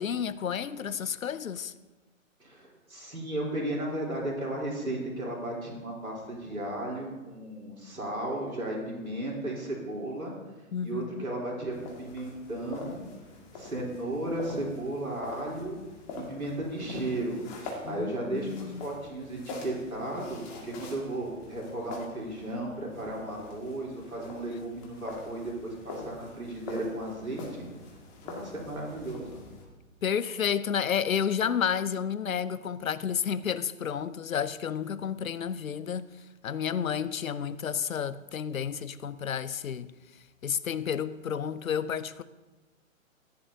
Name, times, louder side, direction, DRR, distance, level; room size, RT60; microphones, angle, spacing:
voice 1, 0.0-1.7 10.7-11.3 17.8-18.9 30.0-36.1 36.4-39.9 40.4-42.2, left 8 dB, 75° left, 0.6 m, -31 dB
voice 2, 2.4-10.3 10.8-13.1 13.5-15.8 16.1-17.4 17.8-27.6 28.2-29.4, right 1 dB, 90° right, 3.6 m, -35 dB
sound 1, 11.7-29.6, left 3 dB, 35° left, 2.1 m, -45 dB
15.0 x 10.5 x 2.7 m
figure-of-eight pair, 125°, 41 cm